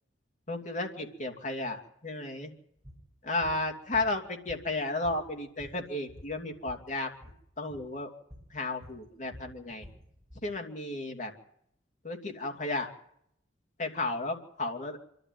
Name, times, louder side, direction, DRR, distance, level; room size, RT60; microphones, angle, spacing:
voice 1, 0.5-2.5 3.2-7.1 7.6-8.1 8.5-9.8 10.4-11.3 12.0-12.9 13.8-15.0, left 2 dB, 40° left, 2 dB, 2.8 m, -33 dB
sound 1, 2.8-3.0 3.4-3.6 3.9-4.8 5.0-6.9 7.1-7.4 7.7-7.9 8.3-8.5 8.8-10.5, equal, 15° right, 7.2 m, -49 dB
27.0 x 12.0 x 9.6 m, 0.74 s
head